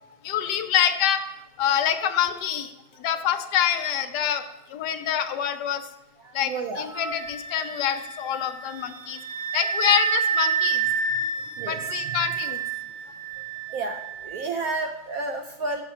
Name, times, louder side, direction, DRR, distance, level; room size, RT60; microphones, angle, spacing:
voice 1, 0.2-1.2 1.6-2.7 3.0-4.5 4.7-5.8 6.3-6.5 6.8-9.2 9.5-10.9 11.7-12.6, left 10 dB, 75° left, 9 dB, 1.1 m, -25 dB
voice 2, 6.2-6.9 11.2-12.4 13.0-13.2 13.7-15.8, right 3 dB, 70° right, 5 dB, 0.9 m, -33 dB
Wind instrument woodwind instrument, 6.9-14.4, right 6 dB, 20° right, 0.6 m, -29 dB
7.5 x 7.1 x 5.6 m, 0.98 s
omnidirectional pair, 2.0 m